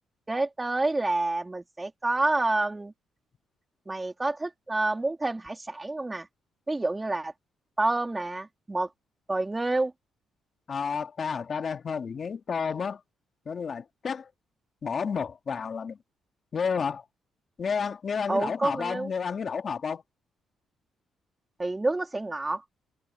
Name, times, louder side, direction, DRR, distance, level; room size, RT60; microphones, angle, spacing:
voice 1, 0.3-2.9 3.9-6.3 6.7-7.3 7.8-8.9 9.3-9.9 18.3-19.1 21.6-22.6, right 2 dB, 15° right, 3.1 m, -28 dB
voice 2, 10.7-13.0 13.5-14.3 14.8-16.0 16.5-17.0 17.6-20.0, left 6 dB, 45° left, 1.9 m, -31 dB
cardioid pair, 90°, 0 cm